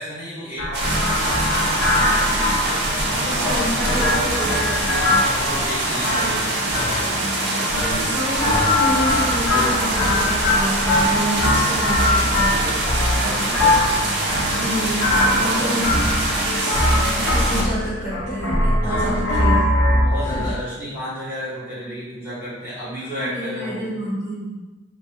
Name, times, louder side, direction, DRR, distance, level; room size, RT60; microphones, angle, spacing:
voice 1, 0.0-2.6 3.2-3.8 5.2-6.4 13.2-13.8 15.1-15.9 18.8-19.1 20.0-23.9, equal, 10° right, -12 dB, 1.3 m, -32 dB
sound 1, 0.6-20.5, left 1 dB, 60° left, 0.6 m, -22 dB
sound 2, 0.7-17.6, right 1 dB, 55° right, 0.6 m, -24 dB
voice 2, 3.2-4.9 7.1-12.7 14.6-16.9 17.3-19.8 20.4-20.5 23.1-24.6, equal, 5° left, -15 dB, 0.8 m, -29 dB
3.1 x 2.2 x 3.0 m, 1.1 s
head